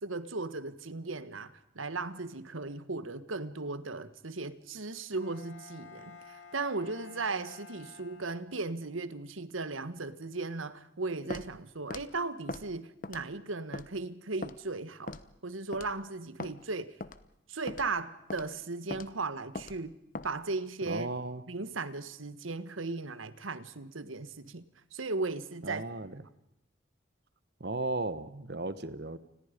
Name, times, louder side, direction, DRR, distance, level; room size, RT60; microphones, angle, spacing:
voice 1, 0.0-15.2 15.4-16.9 17.5-20.0 20.2-21.1 21.5-24.6 24.9-25.8, right 3 dB, 90° right, 1.5 m, -37 dB
Bowed string instrument, 5.1-8.9, left 4 dB, 65° left, 2.7 m, -52 dB
Walk footsteps, 11.3-11.5 11.9-12.1 12.5-12.7 13.0-13.3 13.7-13.9 14.4-14.6 15.1-15.3 15.7-15.9 16.4-16.5 17.0-17.2 17.7-17.9 18.3-18.5 18.9-19.1 19.6-19.8 20.1-20.3, left 2 dB, 40° left, 1.0 m, -39 dB
voice 2, 20.9-21.4 25.6-26.2 27.6-29.2, right 2 dB, 55° right, 1.3 m, -35 dB
29.0 x 21.5 x 5.2 m
head